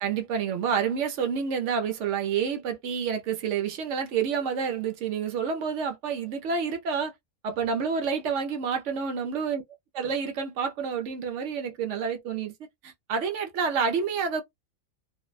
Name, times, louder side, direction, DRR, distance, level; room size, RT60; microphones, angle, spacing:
voice 1, 0.0-7.1 7.4-9.6 9.9-12.5 12.8-14.4, right 6 dB, 65° right, 0.8 m, -28 dB
2.6 x 2.1 x 2.3 m
omnidirectional pair, 1.5 m